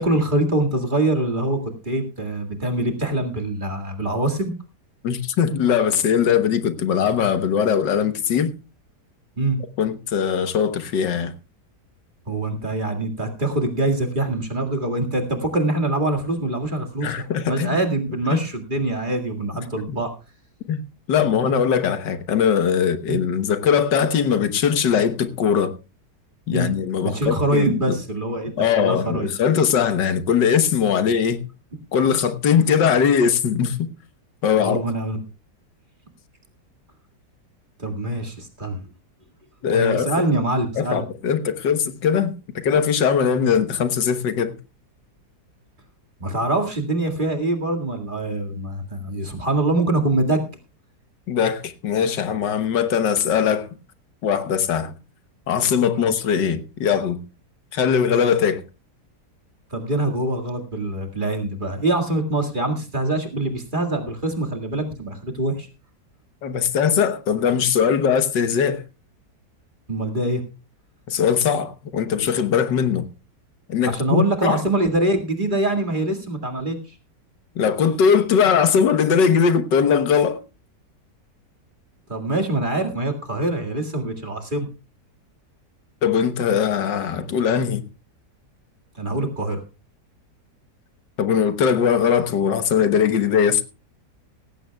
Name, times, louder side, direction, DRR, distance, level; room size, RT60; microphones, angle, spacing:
voice 1, 0.0-4.5 9.4-9.6 12.3-17.1 17.5-20.1 23.1-23.2 26.5-26.7 27.0-29.3 34.6-35.2 37.8-38.8 39.7-41.0 46.2-50.4 55.9-56.1 59.7-65.7 69.9-70.4 73.9-76.8 82.1-84.7 89.0-89.6, right 2 dB, 30° right, 2.1 m, -24 dB
voice 2, 5.0-8.5 9.8-11.3 17.0-17.8 18.3-18.4 19.9-20.0 20.7-20.8 21.1-25.8 26.5-28.0 28.6-31.4 31.9-33.9 34.4-34.8 39.6-40.3 40.8-44.5 51.3-53.7 54.2-54.9 55.5-57.2 57.7-58.6 66.4-68.8 71.1-73.1 73.7-74.6 77.6-80.4 86.0-87.8 91.2-93.6, left 7 dB, 85° left, 1.8 m, -20 dB
17.0 x 15.5 x 2.3 m
omnidirectional pair, 1.9 m